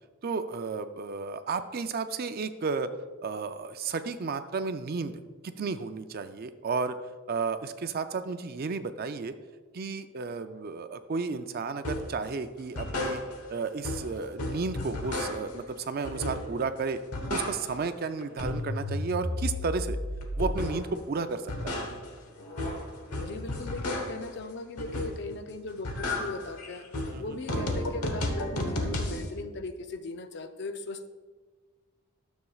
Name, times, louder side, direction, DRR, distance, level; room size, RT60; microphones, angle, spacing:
voice 1, 0.2-2.9 3.2-7.0 7.3-9.3 9.7-13.2 13.5-17.0 17.3-20.0 20.4-21.8 27.1-27.4, right 4 dB, 45° right, 10 dB, 0.4 m, -33 dB
sound 1, 11.8-12.2 12.6-13.6 13.8-15.6 16.0-16.7 17.0-17.9 18.2-20.9 21.3-24.3 24.8-25.4 25.7-29.3, left 1 dB, 80° left, 1.1 m, -33 dB
voice 2, 23.2-26.9 27.2-31.1, left 2 dB, 50° left, 8 dB, 0.5 m, -38 dB
12.5 x 7.2 x 2.4 m, 1.4 s
head